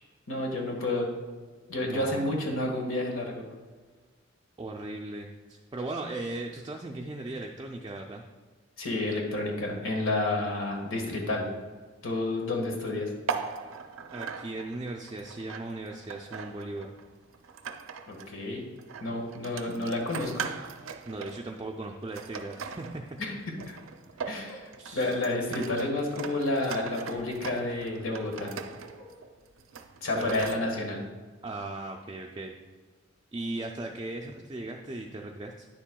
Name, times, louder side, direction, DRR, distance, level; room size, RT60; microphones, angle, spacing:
voice 1, 0.3-1.1 1.7-3.4 8.8-11.5 12.0-13.1 18.1-18.6 19.0-20.5 23.2-23.3 23.7-23.8 24.3-28.5 30.0-31.0, left 2 dB, 85° left, 1 dB, 1.5 m, -30 dB
voice 2, 1.9-2.3 4.6-8.2 14.1-16.9 21.1-23.0 24.8-25.2 30.1-30.4 31.4-32.6 33.3-35.7, right 2 dB, 20° right, 1 dB, 0.4 m, -38 dB
sound 1, 13.3-18.3 18.8-30.6, right 6 dB, 85° right, 0.5 m, -40 dB
sound 2, 24.1-24.2 24.5-24.7 25.0-25.3 28.1-29.1, right 1 dB, 15° left, 1.4 m, -48 dB
9.7 x 7.2 x 2.3 m, 1.4 s
head